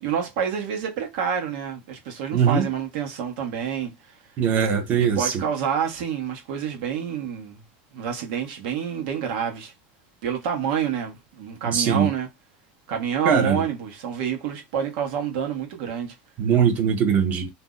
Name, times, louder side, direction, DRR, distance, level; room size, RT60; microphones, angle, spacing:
voice 1, 0.0-4.2 4.9-7.6 7.9-9.7 10.2-12.3 12.9-16.1, right 8 dB, 70° right, 1.0 m, -28 dB
voice 2, 2.3-2.7 4.4-5.3 11.7-12.1 13.2-13.6 16.4-17.5, right 7 dB, 35° right, 0.8 m, -21 dB
2.6 x 2.1 x 3.7 m
supercardioid pair, 155°, 5 cm